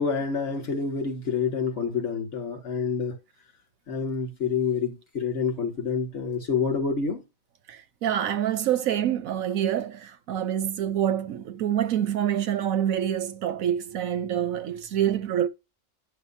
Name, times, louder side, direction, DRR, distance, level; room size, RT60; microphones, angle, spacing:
voice 1, 0.0-3.2 3.9-7.2, left 5 dB, 60° left, 2.3 m, -28 dB
voice 2, 8.0-15.5, right 10 dB, 85° right, 1.2 m, -26 dB
10.5 x 6.5 x 2.8 m
omnidirectional pair, 1.4 m